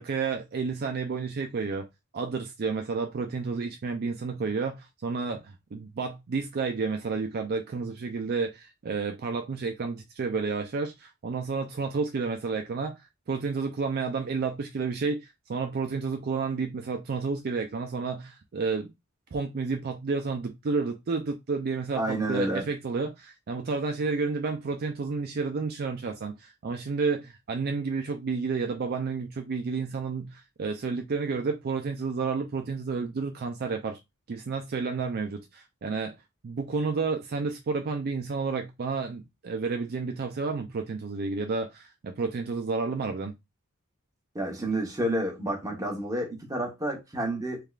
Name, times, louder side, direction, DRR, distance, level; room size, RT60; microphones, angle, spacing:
voice 1, 0.0-1.8 2.1-18.9 19.3-22.0 22.3-34.0 34.3-36.1 36.4-43.3, right 4 dB, 45° right, 0.4 m, -31 dB
voice 2, 22.0-22.7 44.3-47.6, right 1 dB, 15° right, 1.0 m, -29 dB
3.5 x 3.1 x 2.4 m
head